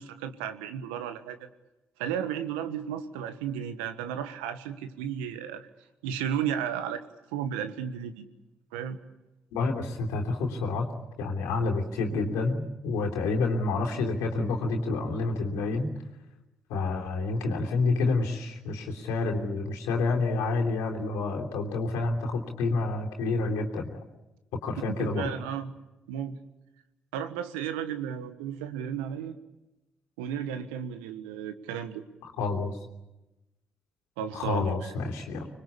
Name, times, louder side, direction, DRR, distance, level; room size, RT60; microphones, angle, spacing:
voice 1, 0.0-1.5 2.0-5.7 6.0-7.0 7.3-8.2 8.7-9.0 24.9-25.7 26.1-26.4 27.1-29.4 30.2-32.0 34.2-34.9, right 8 dB, 90° right, 11 dB, 1.4 m, -34 dB
voice 2, 9.5-10.9 11.2-15.9 16.7-24.0 24.6-25.3 32.4-32.8 34.3-35.5, left 3 dB, 80° left, 1 dB, 3.3 m, -28 dB
25.5 x 21.0 x 8.5 m, 0.99 s
hypercardioid pair, 45°, 5 cm